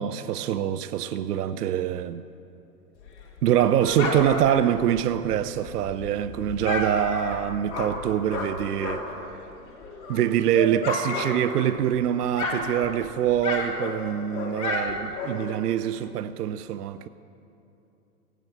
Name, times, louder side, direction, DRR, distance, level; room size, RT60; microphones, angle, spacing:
voice 1, 0.0-2.2 3.4-9.0 10.1-17.1, right 10 dB, 70° right, 0.7 m, -25 dB
Dog, 3.0-9.3 9.7-12.0 12.2-15.7, left 2 dB, 40° left, 2.8 m, -32 dB
16.0 x 9.3 x 7.8 m
hypercardioid pair, 115°, 49 cm